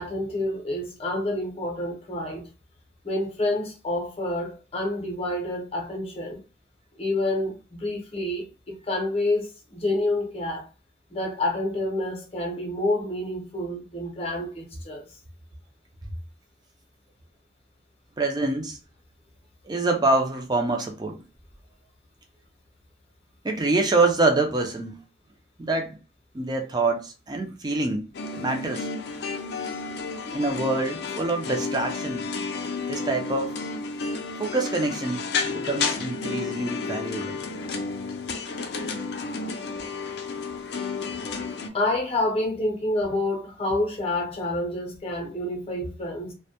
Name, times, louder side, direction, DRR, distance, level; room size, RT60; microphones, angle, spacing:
voice 1, 0.0-2.5 3.0-6.4 7.0-10.7 11.1-15.0 41.7-46.3, left 1 dB, 35° left, 0.7 m, -28 dB
voice 2, 18.2-18.8 19.6-21.2 23.4-25.0 25.6-26.0 26.3-28.1 28.4-28.9 30.3-32.3 32.9-33.5 34.4-37.4, right 3 dB, 25° right, 0.4 m, -26 dB
sound 1, 28.1-41.7, left 4 dB, 65° left, 0.4 m, -31 dB
2.1 x 2.1 x 2.8 m
head